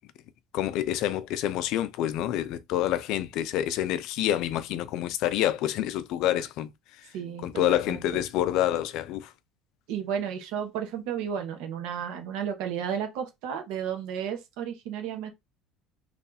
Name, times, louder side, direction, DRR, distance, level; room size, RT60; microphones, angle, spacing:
voice 1, 0.5-6.7 7.4-9.3, left 12 dB, 55° left, 0.5 m, -27 dB
voice 2, 7.1-8.0 9.9-15.3, right 8 dB, 75° right, 1.2 m, -33 dB
3.1 x 2.6 x 4.0 m
cardioid pair, 170°, 0 cm